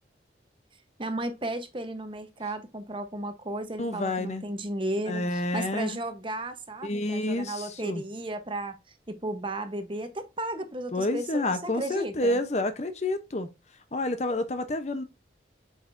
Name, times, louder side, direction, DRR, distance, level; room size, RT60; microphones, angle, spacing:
voice 1, 1.0-8.8 9.1-12.4, right 1 dB, 30° right, 0.9 m, -34 dB
voice 2, 3.8-4.4 5.1-6.0 6.8-8.0 10.9-13.5 13.9-15.0, left 1 dB, 35° left, 0.7 m, -29 dB
8.0 x 5.0 x 2.6 m
head